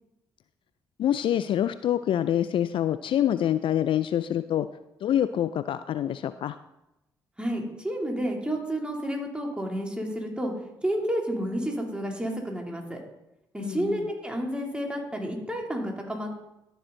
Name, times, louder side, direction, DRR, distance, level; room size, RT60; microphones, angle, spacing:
voice 1, 1.0-4.7 5.0-6.6 13.6-14.1, left 10 dB, 55° left, 13 dB, 0.4 m, -26 dB
voice 2, 7.4-10.5 10.8-13.0 13.5-16.4, equal, 10° right, 0 dB, 2.9 m, -30 dB
12.5 x 6.1 x 3.9 m, 0.92 s
hypercardioid pair, 45°, 11 cm